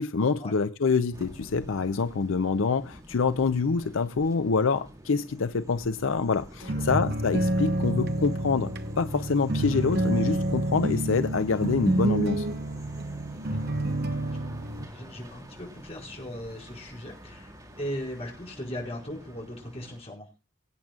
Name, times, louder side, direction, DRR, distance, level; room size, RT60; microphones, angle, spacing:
voice 1, 0.0-12.5, left 4 dB, 80° left, 0.6 m, -26 dB
sound 1, 1.1-20.0, equal, 20° right, 2.5 m, -48 dB
sound 2, 6.6-14.9, right 1 dB, 50° right, 0.9 m, -28 dB
voice 2, 13.5-13.8 14.4-20.3, equal, 30° left, 5.1 m, -39 dB
23.5 x 8.9 x 2.4 m
head